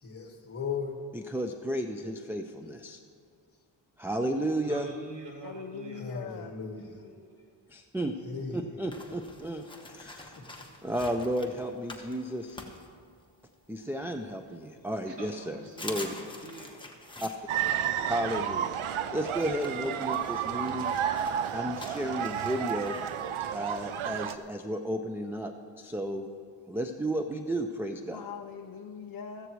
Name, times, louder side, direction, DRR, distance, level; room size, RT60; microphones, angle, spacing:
voice 1, 0.0-0.9 6.0-7.3 8.2-8.6 10.3-10.6 18.8-19.0 20.0-20.6, left 5 dB, 30° left, 1 dB, 1.8 m, -38 dB
voice 2, 1.1-3.0 4.0-4.9 7.7-8.1 8.5-9.6 9.9-10.4 10.8-12.6 13.7-15.5 15.8-16.1 17.2-17.3 18.1-18.7 19.1-20.9 21.5-23.0 23.5-26.3 26.7-28.3, right 1 dB, 5° right, 5 dB, 0.4 m, -33 dB
voice 3, 4.6-6.1 15.1-16.9, right 3 dB, 60° right, 2 dB, 1.1 m, -45 dB
voice 4, 5.4-6.5 28.1-29.5, left 7 dB, 50° left, 4 dB, 0.5 m, -41 dB
sound 1, 8.9-13.5 14.0-14.9 15.3-15.4 15.7-24.5, left 2 dB, 10° left, 1.1 m, -47 dB
sound 2, 17.5-24.4, right 9 dB, 85° right, 0.6 m, -31 dB
14.5 x 14.5 x 3.1 m, 2.1 s
wide cardioid pair, 130°, 48 cm